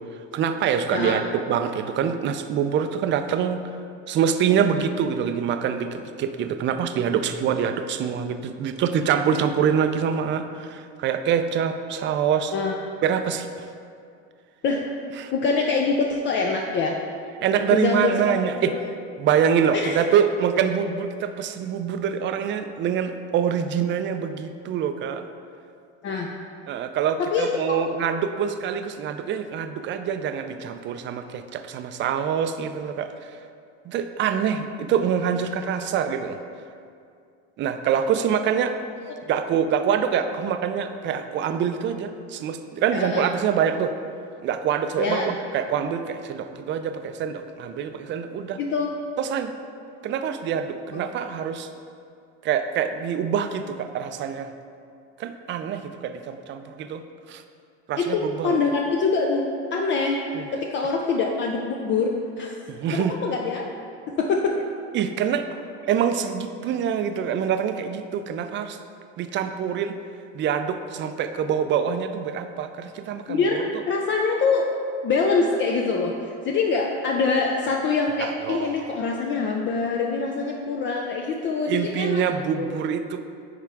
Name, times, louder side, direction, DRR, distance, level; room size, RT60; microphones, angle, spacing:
voice 1, 0.3-3.6 4.1-12.5 13.0-13.7 15.2-15.3 17.4-18.7 19.2-25.2 26.7-33.4 33.9-36.4 37.6-38.8 39.3-43.9 44.4-48.6 49.2-49.5 50.0-51.7 52.4-54.5 55.2-57.0 57.3-57.4 57.9-58.6 60.3-60.6 62.7-63.1 64.9-65.5 65.9-68.8 69.2-70.0 70.3-73.4 78.2-78.9 81.7-83.2, right 8 dB, 35° right, 8 dB, 0.4 m, -25 dB
voice 2, 15.3-17.0 17.7-18.4 18.7-18.8 19.7-20.0 26.0-26.3 27.2-27.9 42.9-43.3 45.0-45.3 48.6-48.9 50.9-51.0 58.0-60.2 60.5-62.5 62.9-63.7 64.1-64.6 73.3-74.7 75.0-82.2 82.6-82.7, left 4 dB, 35° left, 1 dB, 0.5 m, -24 dB
9.6 x 3.7 x 3.5 m, 2.4 s
supercardioid pair, 115°, 32 cm